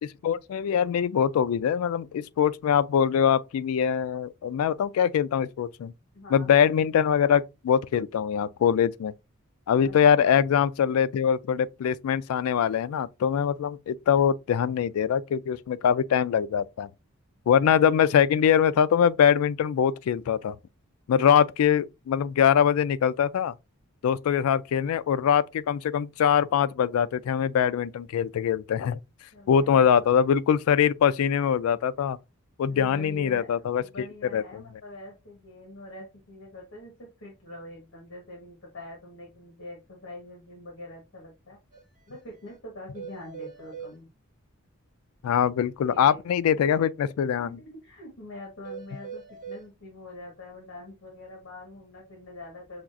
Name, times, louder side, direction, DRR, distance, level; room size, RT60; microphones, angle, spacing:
voice 1, 0.0-5.9 6.3-9.1 9.7-16.9 17.5-20.5 21.1-23.5 24.0-29.0 29.5-32.2 32.6-34.1 34.3-34.6 45.2-47.6, left 8 dB, 85° left, 0.3 m, -23 dB
voice 2, 6.1-6.5 9.8-10.4 29.3-29.9 32.7-33.5 33.8-36.9 37.2-41.6 42.1-44.1 45.9-46.2 47.4-52.8, left 2 dB, 60° left, 1.2 m, -44 dB
sound 1, 41.7-41.8 42.1-42.2 42.5-42.6 42.9-43.9 48.6-49.6, right 6 dB, 35° right, 1.2 m, -41 dB
5.8 x 2.4 x 2.4 m
head